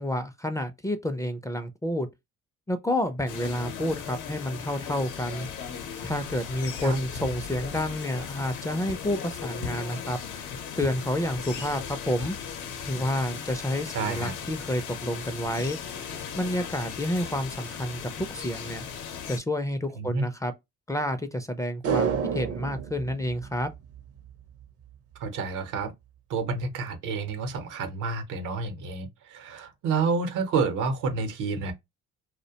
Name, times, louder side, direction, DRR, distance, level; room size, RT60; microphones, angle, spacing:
voice 1, 0.0-2.1 2.7-5.5 6.0-10.4 10.8-12.4 12.9-15.8 16.3-18.8 19.3-20.5 20.9-23.7, left 1 dB, 10° left, 0.3 m, -29 dB
sound 1, 3.3-19.4, left 7 dB, 90° left, 0.7 m, -37 dB
voice 2, 13.9-14.3 20.0-20.3 25.2-25.9 26.3-31.7, right 4 dB, 85° right, 0.8 m, -29 dB
sound 2, 21.8-24.3 24.6-24.7, right 7 dB, 50° right, 0.5 m, -30 dB
2.4 x 2.1 x 2.7 m
cardioid pair, 90°, 30 cm